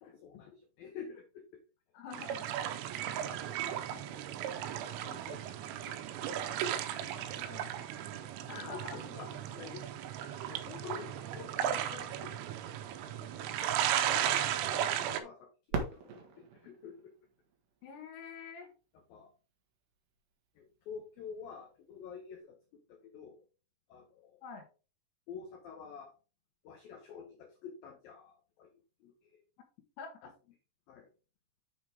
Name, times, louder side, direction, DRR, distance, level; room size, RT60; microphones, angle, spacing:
voice 1, 0.0-1.4 3.0-4.4 5.0-5.4 5.7-6.7 7.0-7.5 8.1-8.3 8.7-9.9 10.5-12.7 13.1-17.1 19.1-19.3 20.6-23.4 23.9-24.4 25.3-26.1 26.6-28.7 29.0-29.4 30.2-30.3 30.9-31.1, left 6 dB, 85° left, 4 dB, 2.0 m, -49 dB
voice 2, 1.9-2.6 7.5-7.7 8.5-9.0 14.7-14.9 17.8-18.7 24.4-24.7 30.0-30.3, left 5 dB, 70° left, 5 dB, 3.0 m, -46 dB
sound 1, 2.1-15.2, right 10 dB, 85° right, 3.4 m, -35 dB
Fireworks, 15.7-18.5 19.2-19.3 19.9-20.4 22.3-22.4, right 4 dB, 60° right, 2.7 m, -41 dB
8.0 x 6.6 x 3.5 m, 0.33 s
omnidirectional pair, 5.8 m